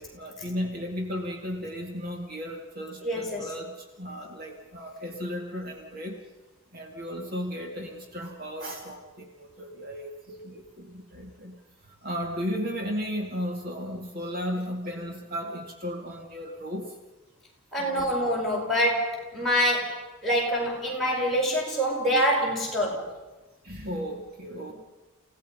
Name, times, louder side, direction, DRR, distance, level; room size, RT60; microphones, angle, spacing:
voice 1, 0.0-6.2 6.7-11.6 11.9-16.9 17.8-18.1 23.6-24.7, equal, 45° right, 2 dB, 2.2 m, -35 dB
voice 2, 3.0-3.5 17.7-23.2, equal, ahead, -5 dB, 5.6 m, -26 dB
29.0 x 17.5 x 5.6 m, 1.1 s
head